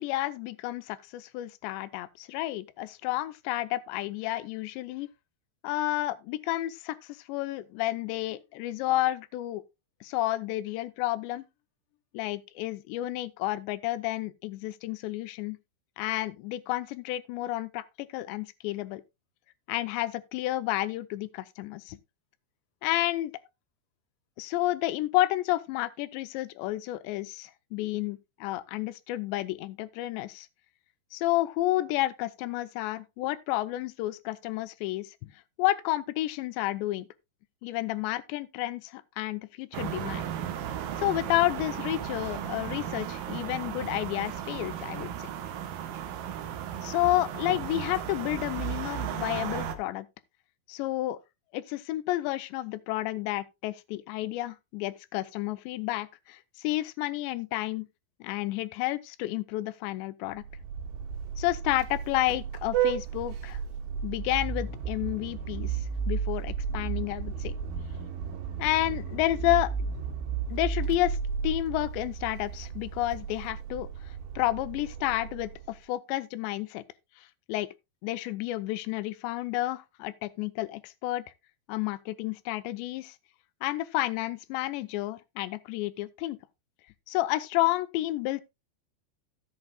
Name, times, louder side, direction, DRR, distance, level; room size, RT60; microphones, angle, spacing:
voice 1, 0.0-5.1 5.6-9.6 10.0-11.4 12.1-15.6 16.0-19.0 19.7-22.0 22.8-23.3 24.4-30.5 31.1-35.3 35.6-37.1 37.6-40.2 41.0-45.3 46.8-50.1 50.7-51.2 51.5-57.9 58.2-60.4 61.4-63.6 64.0-67.5 68.6-69.7 70.5-71.2 71.4-76.8 77.2-77.7 78.0-81.3 81.7-83.2 83.6-86.4 87.1-88.4, left 16 dB, 80° left, 2.7 m, -31 dB
sound 1, 39.7-49.8, right 10 dB, 70° right, 2.4 m, -35 dB
Vehicle horn car horn honking, 60.4-75.8, right 7 dB, 85° right, 4.4 m, -34 dB
16.0 x 8.2 x 2.2 m
omnidirectional pair, 5.3 m